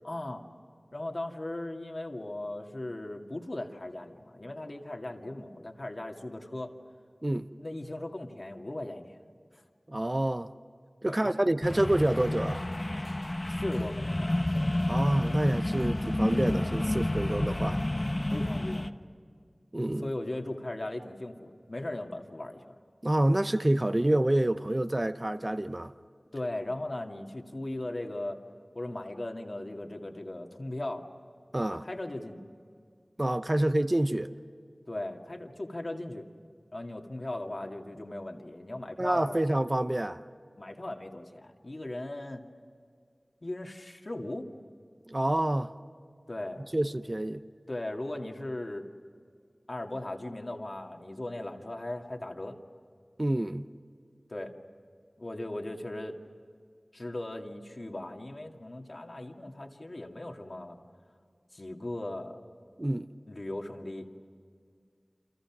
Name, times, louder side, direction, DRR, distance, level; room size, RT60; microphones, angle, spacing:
voice 1, 0.0-0.4 0.9-6.7 7.6-9.2 9.5-9.6 11.1-11.5 13.5-14.4 18.3-18.9 20.0-22.8 26.3-28.4 28.7-31.1 31.7-32.4 34.9-36.3 36.7-39.4 40.6-42.4 43.4-44.5 46.3-46.6 47.7-48.9 49.7-52.6 54.3-54.5 55.2-56.2 56.9-60.8 61.5-62.4 63.3-64.2, left 1 dB, 55° left, 2.2 m, -38 dB
voice 2, 9.9-10.5 11.0-12.6 14.9-17.8 19.7-20.1 23.0-25.9 31.5-31.8 33.2-34.3 39.0-40.2 45.1-45.7 46.7-47.4 53.2-53.7 62.8-63.1, right 1 dB, 35° right, 0.9 m, -27 dB
sound 1, 11.6-18.9, left 1 dB, 35° left, 1.1 m, -30 dB
29.5 x 27.0 x 6.1 m
wide cardioid pair, 50°, 0 cm